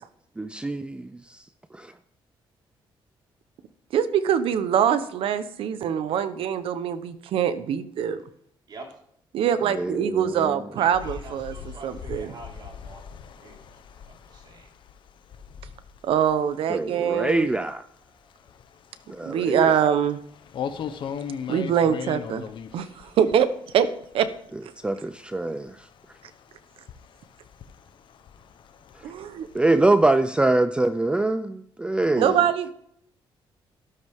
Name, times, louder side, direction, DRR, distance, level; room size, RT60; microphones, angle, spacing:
voice 1, 0.4-1.4 1.7-1.9 9.8-10.5 16.7-17.8 19.1-19.9 24.8-25.9 29.5-32.4, right 2 dB, 10° right, 0.5 m, -24 dB
voice 2, 3.9-8.2 9.3-11.5 11.8-12.3 16.0-17.5 19.2-20.2 21.5-22.4 22.7-23.5 23.7-23.9 24.1-24.3 24.6-24.7 29.0-29.5 32.1-32.7, right 8 dB, 75° right, 1.0 m, -24 dB
voice 3, 8.7-9.0 10.8-14.7, right 3 dB, 50° right, 4.6 m, -46 dB
sound 1, 10.9-24.5 24.8-30.2, left 7 dB, 60° left, 1.1 m, -40 dB
12.5 x 12.5 x 3.7 m
cardioid pair, 115°, 9 cm